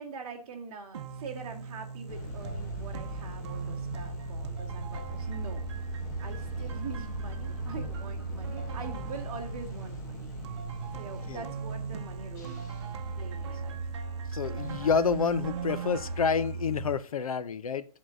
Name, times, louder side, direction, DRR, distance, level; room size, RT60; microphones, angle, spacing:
voice 1, 0.0-5.6 6.2-10.3 10.9-12.6 13.2-13.8, right 5 dB, 25° right, 1.8 m, -43 dB
sound 1, 0.9-17.0, right 5 dB, 45° right, 1.0 m, -38 dB
sound 2, 2.1-16.2, left 1 dB, 30° left, 1.5 m, -41 dB
voice 2, 14.3-17.9, left 6 dB, 65° left, 0.6 m, -28 dB
9.9 x 4.0 x 6.2 m
hypercardioid pair, 155°, 20 cm